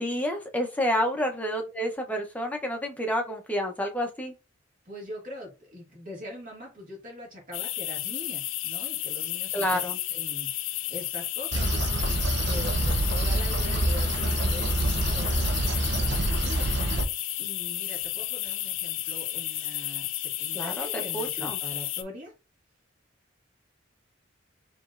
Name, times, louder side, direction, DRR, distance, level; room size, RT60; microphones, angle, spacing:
voice 1, 0.0-4.3 9.5-10.0 20.5-21.6, equal, 10° left, 3 dB, 0.7 m, -29 dB
voice 2, 4.9-9.8 10.1-10.5 10.9-11.7 12.1-16.7 17.4-20.1 20.4-22.3, left 1 dB, 45° right, -2 dB, 2.1 m, -42 dB
sound 1, 7.5-22.0, left 14 dB, 85° left, 0.5 m, -32 dB
sound 2, 11.5-17.0, right 1 dB, 60° right, 0.7 m, -26 dB
5.0 x 3.0 x 2.5 m, 0.29 s
head